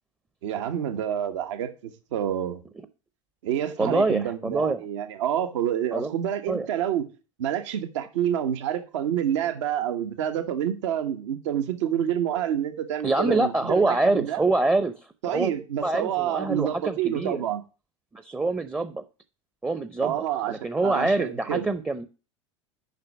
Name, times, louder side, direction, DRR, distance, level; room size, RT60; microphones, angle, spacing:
voice 1, 0.4-2.6 3.4-7.0 7.4-14.4 15.2-17.6 20.0-21.6, right 10 dB, 70° right, 8 dB, 1.2 m, -28 dB
voice 2, 3.8-4.8 5.9-6.1 6.5-6.7 13.0-14.9 15.3-15.5 15.8-17.4 18.1-19.0 19.6-20.1 20.5-22.1, right 2 dB, 10° right, 11 dB, 0.6 m, -25 dB
6.7 x 5.5 x 7.0 m, 0.33 s
hypercardioid pair, 85°, 16 cm